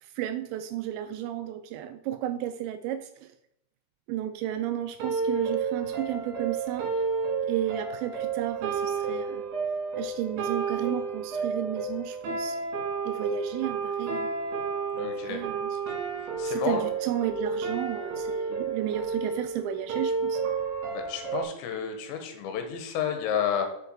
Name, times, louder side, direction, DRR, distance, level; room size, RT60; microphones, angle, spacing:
voice 1, 0.0-3.3 4.1-6.9 7.5-9.4 10.0-12.6 13.0-14.3 15.0-15.8 16.4-20.4, right 11 dB, 85° right, 9 dB, 2.6 m, -33 dB
sound 1, 5.0-21.4, right 5 dB, 65° right, 3.8 m, -31 dB
voice 2, 14.9-15.4 16.4-16.8 20.9-23.7, left 8 dB, 75° left, 6 dB, 3.3 m, -31 dB
7.9 x 7.1 x 4.6 m, 0.82 s
omnidirectional pair, 5.5 m